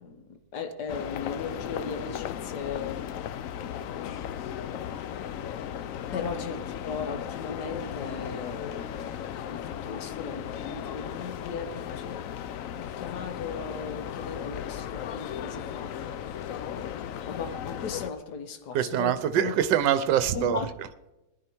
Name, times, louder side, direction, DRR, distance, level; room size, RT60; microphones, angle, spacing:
voice 1, 0.0-3.3 3.6-4.5 6.1-9.1 9.5-12.2 12.7-16.0 16.6-19.5 20.3-20.7, left 5 dB, 60° left, 1.6 m, -37 dB
sound 1, 0.9-18.1, left 9 dB, 80° left, 0.7 m, -36 dB
voice 2, 18.7-21.1, right 10 dB, 75° right, 1.3 m, -25 dB
18.5 x 10.5 x 4.5 m
omnidirectional pair, 2.0 m